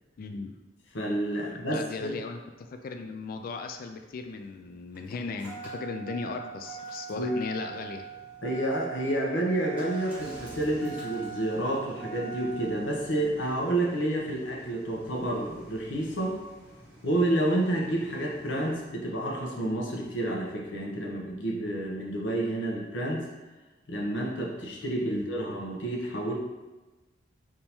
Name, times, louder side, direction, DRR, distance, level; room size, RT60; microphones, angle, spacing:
voice 1, 0.2-0.6 1.4-8.0 25.1-25.3, left 4 dB, 50° left, 5 dB, 0.3 m, -37 dB
voice 2, 0.9-2.1 7.2-7.3 8.4-16.4 17.0-23.3 23.9-26.3, right 1 dB, 70° left, -2 dB, 0.9 m, -29 dB
Engine starting, 3.8-18.9, right 5 dB, 10° right, 1.1 m, -44 dB
3.6 x 2.7 x 4.3 m, 1.2 s
head